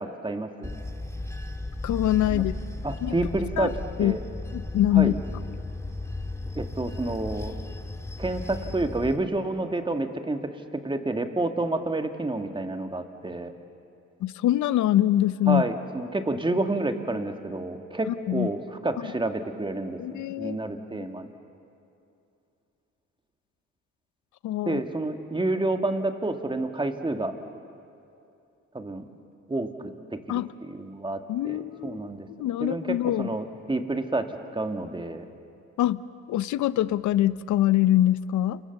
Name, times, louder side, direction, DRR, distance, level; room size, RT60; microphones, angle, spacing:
voice 1, 0.2-0.7 2.3-2.4 2.8-3.7 4.0-4.2 4.9-5.2 6.6-7.5 8.2-13.5 15.5-21.3 24.7-27.3 28.7-29.1 29.5-32.3 32.6-34.3 34.5-35.3, right 2 dB, 15° right, 6 dB, 1.9 m, -29 dB
Bell / Train, 0.6-9.2, left 2 dB, 10° left, 1.8 m, -35 dB
voice 2, 1.8-2.5 3.0-3.2 3.6-3.7 4.0-4.2 4.5-5.1 14.2-15.6 18.1-18.5 20.0-20.6 24.4-24.8 30.3-30.5 31.3-33.3 35.8-36.0 36.3-38.6, left 13 dB, 75° left, 16 dB, 0.6 m, -24 dB
29.0 x 24.0 x 7.1 m, 2.6 s
cardioid pair, 90°, 30 cm